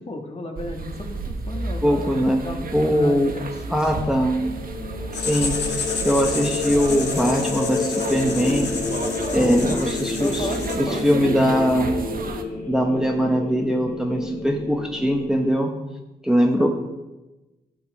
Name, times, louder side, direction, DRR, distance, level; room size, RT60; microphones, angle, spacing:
voice 1, 0.0-2.7 3.0-3.8 9.3-11.5 16.6-16.7, left 2 dB, 35° left, 2 dB, 1.6 m, -34 dB
sound 1, 0.6-12.4, right 3 dB, 55° right, 0.9 m, -33 dB
voice 2, 1.8-2.4 2.7-3.3 3.7-4.4 5.2-8.7 9.3-10.5 10.8-11.9 12.7-15.7 16.2-16.7, equal, 5° right, 1 dB, 1.0 m, -21 dB
sound 2, 3.6-15.5, left 3 dB, 50° left, 1.4 m, -30 dB
Writing, 5.1-11.1, left 5 dB, 70° left, 1.3 m, -31 dB
11.5 x 4.9 x 4.7 m, 1.1 s
cardioid pair, 70°, 18 cm